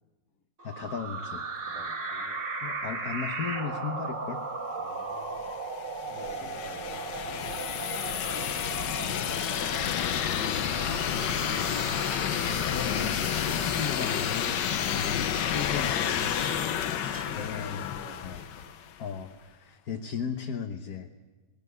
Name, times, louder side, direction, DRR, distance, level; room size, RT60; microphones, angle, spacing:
voice 1, 0.6-1.5 2.6-4.4 10.7-11.2 12.8-16.2 17.3-17.9 18.2-18.4 19.0-21.1, left 6 dB, 60° left, 4 dB, 1.5 m, -36 dB
sound 1, 0.6-16.3, right 3 dB, 45° right, 2.3 m, -37 dB
voice 2, 1.6-2.4 4.8-5.6 6.0-7.6 16.4-16.9 17.2-18.6, left 2 dB, 45° left, 3 dB, 2.9 m, -49 dB
sound 2, 5.3-19.0, left 9 dB, 85° left, 1.6 m, -30 dB
sound 3, 12.4-12.7 15.4-15.9 16.2-16.8 17.1-17.4, right 1 dB, 15° right, 1.3 m, -48 dB
19.0 x 17.5 x 9.7 m, 1.2 s
omnidirectional pair, 1.9 m